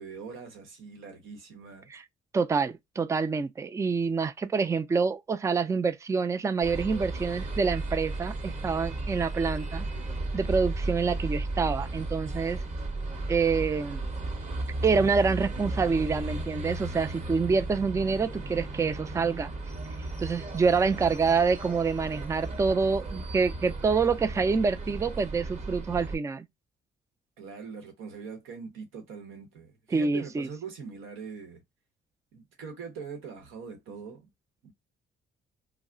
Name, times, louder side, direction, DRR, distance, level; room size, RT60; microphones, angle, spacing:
voice 1, 0.0-1.9 20.8-21.2 27.4-31.6 32.3-34.3 34.6-34.7, right 6 dB, 90° right, 1.0 m, -42 dB
voice 2, 2.3-9.9 10.3-12.6 13.3-14.0 14.8-19.5 20.2-26.5 29.9-30.5, right 5 dB, 15° right, 0.3 m, -27 dB
sound 1, 6.6-26.2, right 2 dB, 35° right, 0.9 m, -35 dB
2.3 x 2.1 x 3.6 m
cardioid pair, 90°, 20 cm